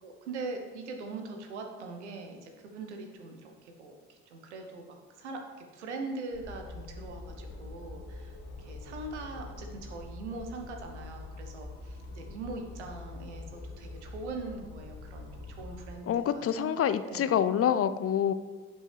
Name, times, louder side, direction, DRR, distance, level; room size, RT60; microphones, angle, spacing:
voice 1, 0.0-17.3, right 3 dB, 90° right, 4 dB, 0.8 m, -42 dB
sound 1, 6.3-15.9, left 2 dB, 60° left, 1.5 m, -44 dB
voice 2, 16.1-18.3, left 9 dB, 45° left, 13 dB, 0.5 m, -27 dB
11.0 x 5.4 x 3.3 m, 1.4 s
hypercardioid pair, 40°, 33 cm